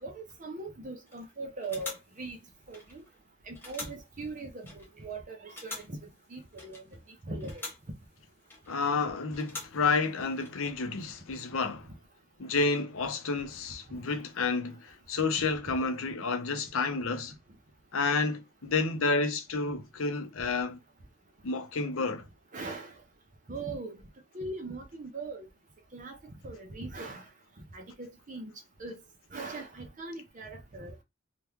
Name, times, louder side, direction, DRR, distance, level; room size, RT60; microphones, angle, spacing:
voice 1, 0.0-2.4 2.7-3.0 3.5-6.0 6.3-6.9 7.3-7.6 13.9-14.0 15.7-15.8 22.5-22.9 23.5-24.0 24.3-25.5 25.9-27.3 27.7-28.5 28.8-29.0 29.3-31.0, right 3 dB, 35° right, 0.6 m, -40 dB
sound 1, 1.1-1.3 1.6-3.2 3.5-5.1 5.5-7.1 7.3-8.9 9.3-10.5, left 2 dB, 10° left, 0.9 m, -46 dB
voice 2, 8.7-11.9 12.4-17.3 17.9-20.8 21.4-22.2, left 4 dB, 75° left, 0.7 m, -30 dB
3.0 x 2.3 x 3.4 m
head